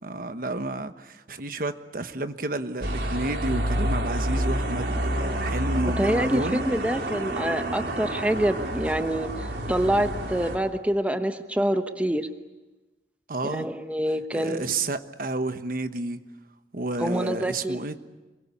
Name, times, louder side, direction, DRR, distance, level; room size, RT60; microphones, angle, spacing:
voice 1, 0.0-6.6 13.3-13.7 14.3-16.2 16.7-18.0, right 2 dB, 50° right, 1.2 m, -30 dB
sound 1, 2.8-10.6, right 1 dB, 80° right, 4.3 m, -29 dB
voice 2, 6.0-12.3 13.4-14.6 17.0-17.8, right 1 dB, 10° right, 1.0 m, -26 dB
27.0 x 22.5 x 8.6 m
head